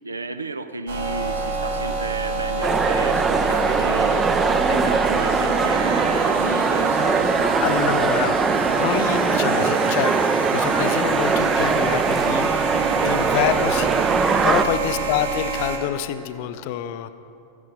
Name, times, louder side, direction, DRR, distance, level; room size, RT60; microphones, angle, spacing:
voice 1, 0.0-7.8 13.0-13.2 14.6-15.0, right 3 dB, 80° right, 10 dB, 0.5 m, -33 dB
sound 1, 0.9-15.8, right 3 dB, 65° right, 1.5 m, -27 dB
sound 2, 2.6-14.6, right 4 dB, 20° right, 0.5 m, -21 dB
voice 2, 7.6-8.4 8.7-10.2 10.5-17.1, left 10 dB, 50° left, 12 dB, 0.5 m, -27 dB
14.0 x 9.8 x 5.1 m, 2.5 s
figure-of-eight pair, 90°, 0 cm